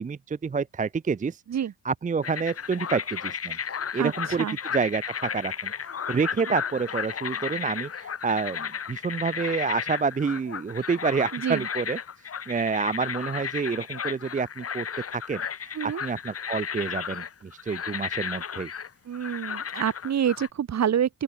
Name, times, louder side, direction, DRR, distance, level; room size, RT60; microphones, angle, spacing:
voice 1, 0.0-1.4 1.8-3.6 3.9-4.5 4.7-12.0 12.5-18.7, right 5 dB, 20° right, 0.7 m, -28 dB
sound 1, 2.2-20.5, left 7 dB, 40° left, 2.4 m, -34 dB
voice 2, 4.0-4.6 11.3-11.7 15.7-16.0 19.1-21.2, right 9 dB, 50° right, 2.1 m, -27 dB
open air
cardioid pair, 110°, 35 cm